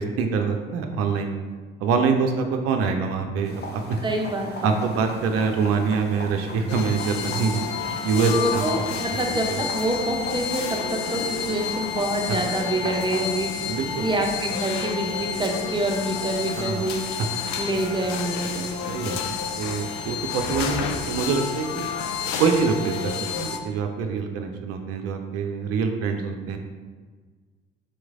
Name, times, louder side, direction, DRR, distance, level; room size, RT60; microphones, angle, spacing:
voice 1, 0.0-1.3 1.8-3.8 4.6-7.7 8.0-8.6 13.7-14.1 16.6-16.9 18.9-21.9 22.4-26.6, right 5 dB, 50° right, 4 dB, 0.5 m, -25 dB
sound 1, 3.1-19.5, left 2 dB, 10° left, 1.0 m, -43 dB
sound 2, 3.4-13.2, left 2 dB, 35° left, 0.9 m, -39 dB
voice 2, 4.0-4.7 8.3-17.0 17.6-18.7, right 1 dB, 15° right, 1 dB, 0.7 m, -27 dB
sound 3, 6.7-23.6, left 6 dB, 55° left, 0.5 m, -30 dB
4.1 x 3.1 x 3.6 m, 1.5 s
hypercardioid pair, 55°, 30 cm